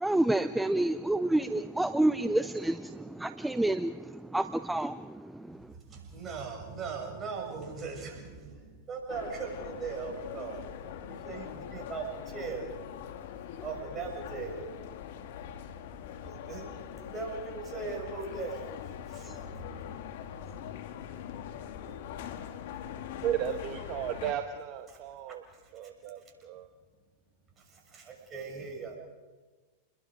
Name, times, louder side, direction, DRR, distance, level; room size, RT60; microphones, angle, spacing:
voice 1, 0.0-2.9 3.2-3.9 4.3-5.0, right 1 dB, 5° right, 11 dB, 0.6 m, -28 dB
voice 2, 5.7-12.7 13.6-15.2 16.5-19.5 24.9-25.0 25.3-26.6 27.6-29.0, right 5 dB, 30° right, 0 dB, 6.8 m, -40 dB
sound 1, 9.1-24.3, left 9 dB, 65° left, 1.7 m, -42 dB
voice 3, 23.2-25.4 25.7-26.7, right 10 dB, 50° right, 6 dB, 1.3 m, -34 dB
29.5 x 21.5 x 5.2 m, 1.3 s
hypercardioid pair, 105°, 0 cm